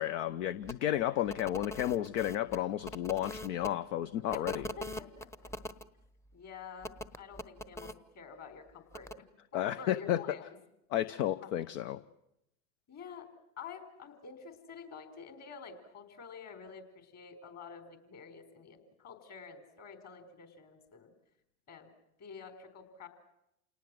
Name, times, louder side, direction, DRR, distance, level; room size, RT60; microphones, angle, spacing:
voice 1, 0.0-4.6 9.5-10.2 10.9-12.0, left 12 dB, 65° left, 14 dB, 0.9 m, -32 dB
sound 1, 0.6-0.8 1.3-3.7 4.3-5.8 6.8-7.9 8.9-9.1, left 1 dB, 5° left, 0.8 m, -42 dB
voice 2, 4.3-5.5 6.3-9.1 9.5-10.6 11.4-11.5 12.9-13.3 13.6-21.1 21.7-21.9 22.2-23.1, left 6 dB, 40° left, 8 dB, 4.5 m, -48 dB
28.0 x 18.5 x 7.7 m, 0.85 s
hypercardioid pair, 85°, 41 cm